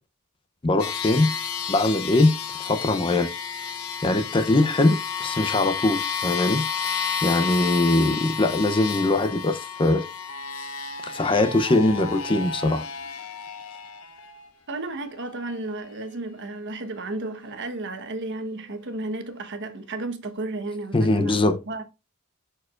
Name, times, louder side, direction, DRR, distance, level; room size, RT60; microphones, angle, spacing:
voice 1, 0.6-1.3 1.7-2.3 2.6-3.3 4.0-6.6 7.2-10.1 11.0-12.8 20.9-21.6, left 2 dB, 25° left, 0.6 m, -21 dB
sound 1, 0.8-14.4, left 6 dB, 70° left, 1.1 m, -31 dB
voice 2, 14.7-21.8, right 2 dB, 55° right, 1.1 m, -33 dB
10.5 x 4.6 x 2.4 m
head